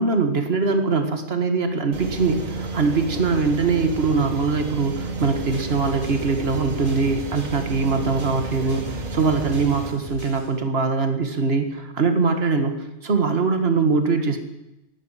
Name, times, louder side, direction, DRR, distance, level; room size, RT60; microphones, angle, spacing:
voice 1, 0.0-14.4, right 4 dB, 50° right, 7 dB, 1.9 m, -22 dB
sound 1, 1.9-9.9, right 3 dB, 85° right, 2.0 m, -32 dB
sound 2, 5.2-10.5, left 2 dB, 25° right, 5.1 m, -39 dB
12.0 x 10.5 x 9.9 m, 0.93 s
omnidirectional pair, 1.4 m